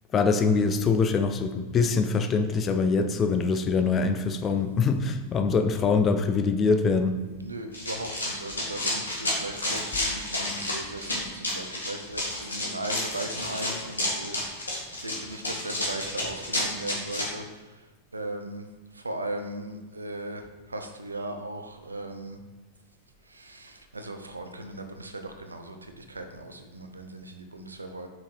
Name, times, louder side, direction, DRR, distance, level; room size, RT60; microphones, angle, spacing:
voice 1, 0.1-7.2, left 4 dB, 25° left, 8 dB, 0.6 m, -24 dB
voice 2, 7.4-17.7 18.1-18.7 18.9-22.4 23.3-28.1, right 1 dB, 80° right, 6 dB, 0.7 m, -38 dB
Run, 7.7-17.2, left 1 dB, 75° left, 1.7 m, -31 dB
5.9 x 4.8 x 4.4 m, 1.2 s
figure-of-eight pair, 90°, 0 cm